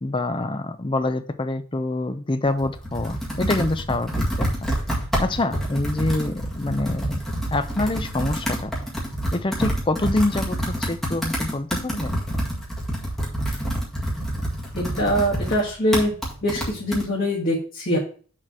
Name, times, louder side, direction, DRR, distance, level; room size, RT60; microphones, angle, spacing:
voice 1, 0.0-4.7 5.2-7.2 7.5-8.7 9.3-12.2, left 2 dB, 25° left, 10 dB, 0.5 m, -26 dB
Computer keyboard, 2.4-17.0, right 1 dB, ahead, 1.9 m, -27 dB
voice 2, 14.7-16.1 16.4-18.0, equal, 40° left, -3 dB, 1.6 m, -23 dB
6.6 x 3.9 x 6.0 m, 0.41 s
head